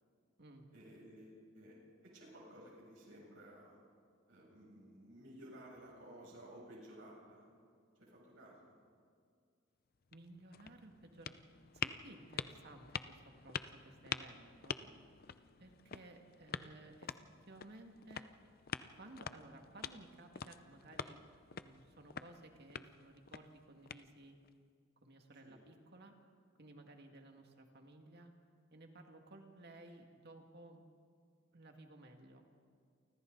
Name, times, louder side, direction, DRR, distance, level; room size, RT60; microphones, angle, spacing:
voice 1, 0.7-3.8 4.3-7.5 8.0-8.8 14.8-14.9 25.4-25.6, right 1 dB, 70° right, -4 dB, 7.8 m, -56 dB
sound 1, 9.9-24.5, left 7 dB, 50° left, 0.6 m, -47 dB
voice 2, 10.1-11.4 11.7-14.8 15.6-17.1 17.5-18.3 18.9-21.2 21.5-24.4 25.0-26.2 26.6-28.3 28.7-30.8 31.5-32.4, right 2 dB, 55° right, 3 dB, 2.2 m, -57 dB
29.5 x 24.5 x 4.0 m, 2.2 s
head